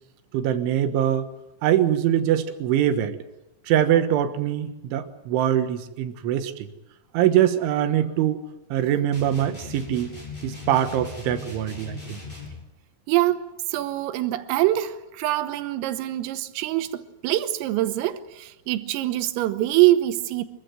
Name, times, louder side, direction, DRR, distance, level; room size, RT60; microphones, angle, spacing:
voice 1, 0.3-1.3 1.6-3.2 3.7-6.5 7.1-8.4 8.7-10.1 10.4-12.2, right 11 dB, 75° right, 3.6 m, -23 dB
sound 1, 9.1-12.6, left 4 dB, 10° left, 6.4 m, -38 dB
voice 2, 13.1-20.4, right 15 dB, 90° right, 3.7 m, -24 dB
25.5 x 15.0 x 9.2 m
omnidirectional pair, 5.8 m